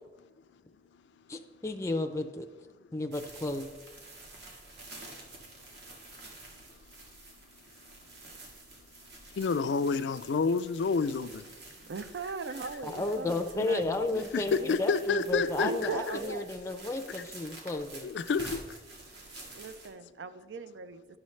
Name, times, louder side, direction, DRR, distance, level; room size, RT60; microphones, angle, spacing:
voice 1, 1.3-2.5 2.9-3.7 12.8-18.1, left 2 dB, 15° left, 0.4 m, -33 dB
sound 1, 3.1-19.9, right 2 dB, 70° right, 1.5 m, -49 dB
voice 2, 9.4-11.4 14.3-16.2 18.0-18.6, left 5 dB, 90° left, 0.4 m, -29 dB
voice 3, 11.9-14.2 14.6-14.8 15.6-16.5 19.5-21.0, right 4 dB, 90° right, 0.5 m, -38 dB
10.5 x 6.2 x 3.2 m
head